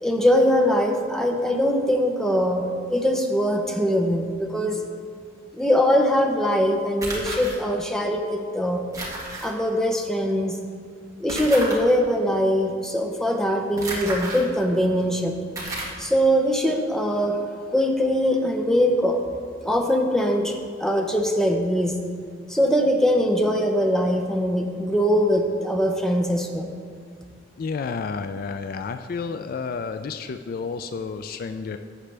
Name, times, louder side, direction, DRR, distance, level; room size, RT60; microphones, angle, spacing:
voice 1, 0.0-4.8 5.5-8.8 9.4-10.6 11.2-15.3 16.0-17.4 17.7-19.2 19.6-20.5 20.8-21.9 22.5-26.7, equal, 5° left, 2 dB, 0.7 m, -22 dB
sound 1, 7.0-7.6 8.9-9.5 11.3-11.8 13.8-14.4 15.0-15.1 15.6-16.0, right 1 dB, 15° right, 1.5 m, -31 dB
voice 2, 27.6-31.8, left 5 dB, 50° left, 9 dB, 0.3 m, -31 dB
11.5 x 7.3 x 3.4 m, 2.1 s
head